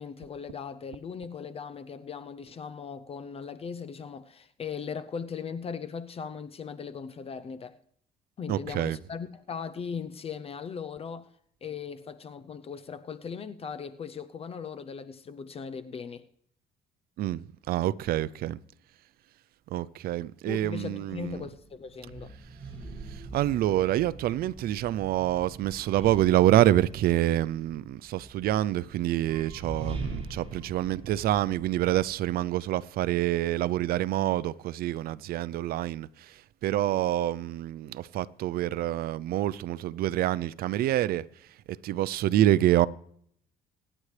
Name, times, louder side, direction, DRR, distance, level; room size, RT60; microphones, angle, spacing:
voice 1, 0.0-7.8 8.4-11.3 11.6-16.3 20.5-22.3, left 6 dB, 35° left, 0.6 m, -38 dB
voice 2, 8.5-9.0 17.2-18.6 19.7-21.4 23.1-36.3 36.6-41.2 41.8-42.9, right 13 dB, 65° right, 0.5 m, -27 dB
sound 1, 20.9-32.7, right 3 dB, 35° right, 7.2 m, -43 dB
24.0 x 9.9 x 3.3 m
cardioid pair, 110°, 17 cm